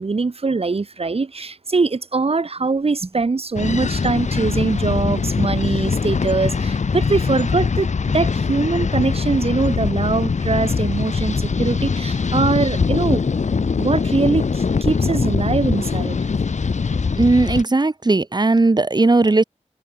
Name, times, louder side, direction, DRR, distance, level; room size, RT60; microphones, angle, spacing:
voice 1, 0.0-7.9 8.1-13.2 13.8-16.2, right 4 dB, 55° right, 7.4 m, -22 dB
sound 1, 3.6-17.6, left 5 dB, 75° left, 4.4 m, -22 dB
voice 2, 17.2-19.4, right 3 dB, 35° right, 4.5 m, -17 dB
wide cardioid pair, 90°, 12 cm